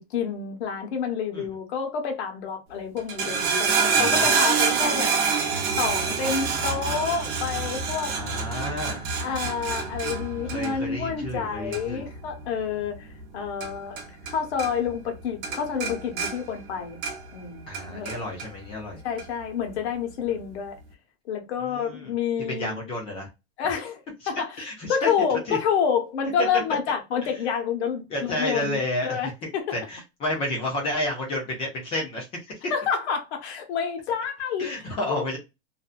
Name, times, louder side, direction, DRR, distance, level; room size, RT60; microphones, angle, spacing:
voice 1, 0.0-5.1 5.8-8.1 9.2-13.1 13.3-14.0 14.3-17.0 17.3-18.1 19.0-20.8 21.3-22.9 23.6-24.5 24.9-29.7 32.7-35.2, left 6 dB, 80° left, 0.9 m, -28 dB
sound 1, 3.0-14.3 14.6-15.2 15.4-17.4 17.7-18.5 19.2-19.3, right 5 dB, 55° right, 0.8 m, -27 dB
voice 2, 3.9-4.3 8.1-9.0 10.5-12.1 17.7-19.0 21.6-22.1 22.5-23.3 24.2-24.3 24.6-25.1 25.5-25.6 27.2-27.3 28.1-32.3 34.6-35.4, left 1 dB, 20° left, 0.4 m, -31 dB
2.6 x 2.2 x 2.3 m
supercardioid pair, 175°, 33 cm